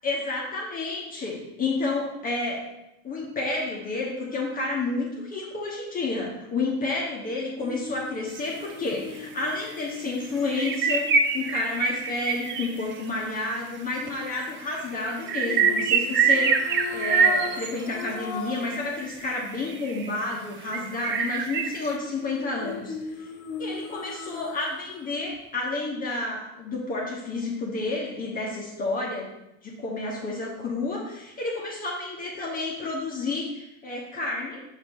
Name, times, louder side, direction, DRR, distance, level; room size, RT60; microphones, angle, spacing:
voice 1, 0.0-2.6 3.0-23.3 23.6-29.3 29.6-34.6, left 3 dB, 25° left, -3 dB, 1.1 m, -30 dB
sound 1, 7.6-11.8 15.4-18.8 19.2-19.3 22.1-25.0 25.3-25.4, left 4 dB, 70° left, 1.0 m, -38 dB
sound 2, 8.3-8.4 8.9-9.0 9.6-9.8 10.0-10.2 10.5-13.2 14.1-14.2 14.4-18.0 18.7-20.2 20.7-21.9, right 5 dB, 35° right, 0.6 m, -25 dB
6.5 x 4.7 x 3.7 m, 0.87 s
cardioid pair, 140°, 34 cm